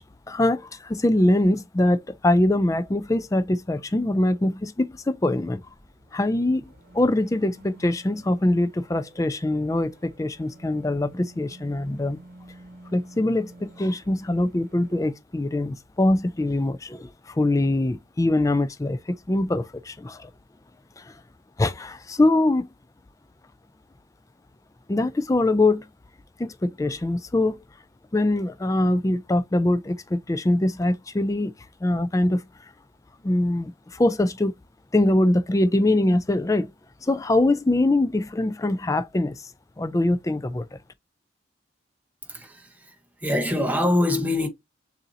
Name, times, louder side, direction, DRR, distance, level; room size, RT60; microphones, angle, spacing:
voice 1, 0.3-5.6 6.1-6.6 6.9-12.2 12.9-20.3 21.0-21.1 21.6-22.7 24.9-25.9 26.4-27.6 28.1-31.5 31.8-32.4 33.2-34.5 34.9-36.7 37.0-39.4 39.8-40.7, left 1 dB, 20° left, 0.4 m, -23 dB
sound 1, 5.6-15.1, right 2 dB, 50° right, 1.3 m, -50 dB
voice 2, 42.3-42.9 43.2-44.5, left 1 dB, 10° right, 0.9 m, -24 dB
6.6 x 2.7 x 2.8 m
head